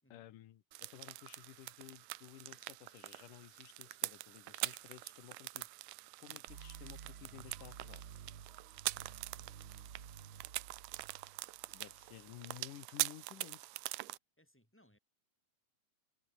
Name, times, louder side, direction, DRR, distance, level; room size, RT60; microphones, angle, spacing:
voice 1, 0.1-5.7 6.2-8.0 11.7-13.6, left 13 dB, 80° left, 2.9 m, -54 dB
sound 1, 0.7-14.2, right 20 dB, 90° right, 2.2 m, -44 dB
sound 2, 6.5-12.4, right 7 dB, 45° right, 2.2 m, -53 dB
voice 2, 11.8-12.5 14.4-15.0, left 1 dB, 5° left, 6.5 m, -69 dB
omnidirectional pair, 3.7 m